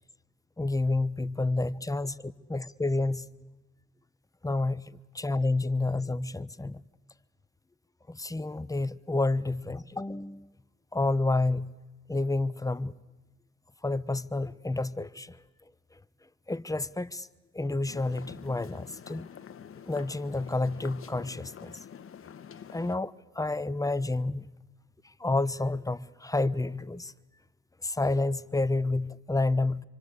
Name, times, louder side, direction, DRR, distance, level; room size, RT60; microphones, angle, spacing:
voice 1, 0.6-3.5 4.4-6.8 8.1-10.5 10.9-11.7 12.1-13.0 13.8-15.4 16.5-17.3 17.5-19.3 19.9-21.8 22.7-24.5 25.0-27.1 27.8-29.8, left 2 dB, 10° left, 1.0 m, -29 dB
sound 1, 17.9-23.0, left 8 dB, 45° left, 1.4 m, -47 dB
27.5 x 24.5 x 8.3 m
cardioid pair, 90°, 30 cm